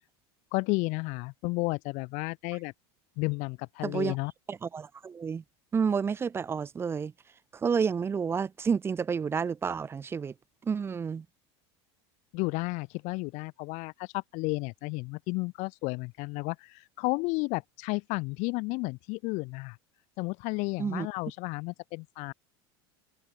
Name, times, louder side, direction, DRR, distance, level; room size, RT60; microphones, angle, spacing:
voice 1, 0.5-2.7 3.2-4.3 12.3-19.8 20.2-22.3, left 27 dB, 60° left, 1.8 m, -32 dB
voice 2, 3.8-4.2 4.5-5.4 5.7-7.1 7.5-10.3 10.6-11.3 20.8-21.1, right 6 dB, 15° right, 0.5 m, -30 dB
supercardioid pair, 135°, 14 cm